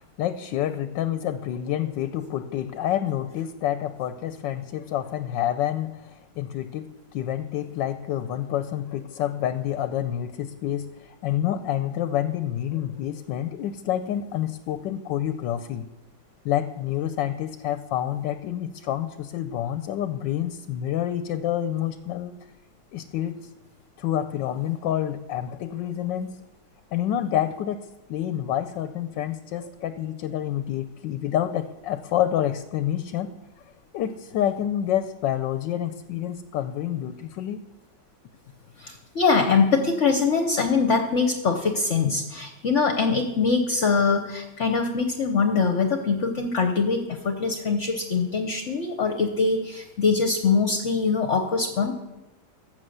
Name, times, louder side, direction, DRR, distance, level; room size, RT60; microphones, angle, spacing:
voice 1, 0.0-15.8 16.4-22.4 22.9-23.4 24.0-26.4 26.9-33.3 33.9-37.6, left 11 dB, 75° left, 10 dB, 1.3 m, -28 dB
voice 2, 38.8-51.9, left 4 dB, 45° left, 6 dB, 1.1 m, -23 dB
13.5 x 6.9 x 7.9 m, 1.0 s
omnidirectional pair, 2.1 m